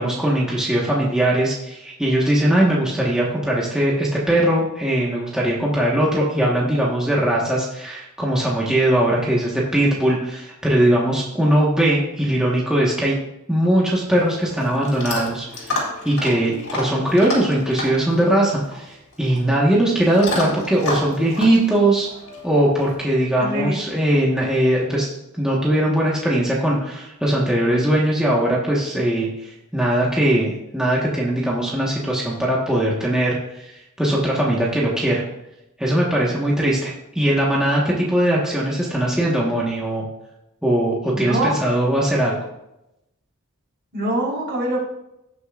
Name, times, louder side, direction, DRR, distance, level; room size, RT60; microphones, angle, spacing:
voice 1, 0.0-13.1 13.5-22.1 22.4-35.2 35.8-40.0 40.6-42.4, right 1 dB, 5° right, -5 dB, 1.4 m, -20 dB
Chewing mastication / Dog, 13.8-22.9, left 1 dB, 75° left, 3.8 m, -31 dB
voice 2, 23.4-23.8 41.1-41.5 43.9-44.8, right 1 dB, 50° right, -4 dB, 3.9 m, -23 dB
17.5 x 6.8 x 2.5 m, 0.89 s
head